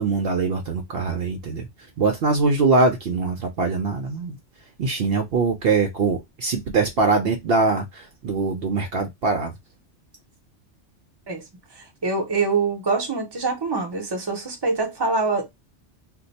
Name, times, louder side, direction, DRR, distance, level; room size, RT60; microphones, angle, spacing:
voice 1, 0.0-1.7 2.0-4.4 4.8-9.5, right 3 dB, 60° right, 0.7 m, -22 dB
voice 2, 11.8-15.5, right 3 dB, 25° right, 0.8 m, -24 dB
2.6 x 2.2 x 3.9 m
omnidirectional pair, 1.2 m